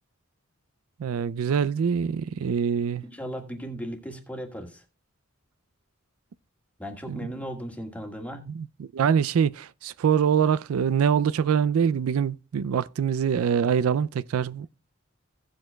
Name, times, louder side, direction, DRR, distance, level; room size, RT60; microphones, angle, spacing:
voice 1, 1.0-3.0 7.1-7.3 8.5-14.7, right 7 dB, 80° right, 0.4 m, -24 dB
voice 2, 3.0-4.8 6.8-8.5, equal, 5° left, 1.6 m, -36 dB
16.5 x 7.7 x 2.2 m
head